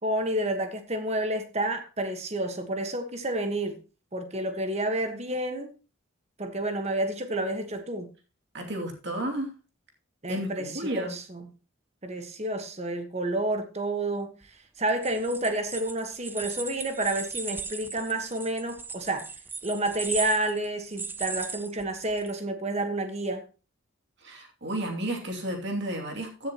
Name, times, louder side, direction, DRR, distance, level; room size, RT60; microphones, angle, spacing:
voice 1, 0.0-3.8 4.1-5.7 6.4-8.1 10.2-11.5 12.0-14.4 14.8-19.3 19.6-23.4, right 1 dB, 30° right, 1.4 m, -30 dB
voice 2, 8.5-9.5 10.3-11.1 24.2-26.5, right 1 dB, 55° right, 2.7 m, -32 dB
sound 1, 14.9-22.3, right 4 dB, 10° right, 0.4 m, -37 dB
15.0 x 7.4 x 3.0 m
head